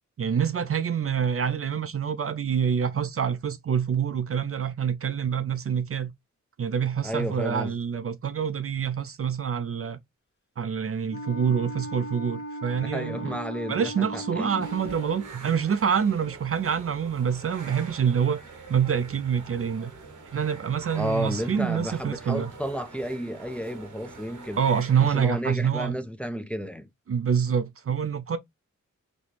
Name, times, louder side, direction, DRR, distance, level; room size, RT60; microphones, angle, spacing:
voice 1, 0.2-6.1 6.6-10.0 10.6-13.4 13.7-18.4 18.7-19.9 20.3-22.5 24.6-26.0 27.1-28.4, right 7 dB, 45° right, 0.5 m, -26 dB
voice 2, 7.0-7.7 12.8-14.7 20.9-24.6 25.1-26.9, equal, 5° left, 0.6 m, -32 dB
Wind instrument woodwind instrument, 11.1-15.3, equal, 35° left, 1.0 m, -37 dB
sound 1, 14.6-25.2, right 4 dB, 90° right, 1.2 m, -44 dB
4.1 x 2.3 x 3.1 m
cardioid pair, 55°, 30 cm